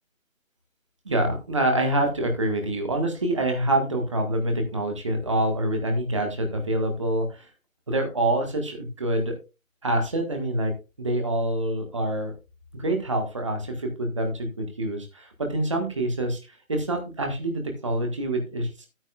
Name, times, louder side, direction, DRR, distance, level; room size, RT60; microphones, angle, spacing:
voice 1, 1.0-7.5 7.9-9.3 9.8-10.7 11.0-12.3 12.7-18.9, right 1 dB, 20° right, 4 dB, 1.6 m, -26 dB
12.0 x 9.1 x 2.4 m, 0.28 s
figure-of-eight pair, 160°, 41 cm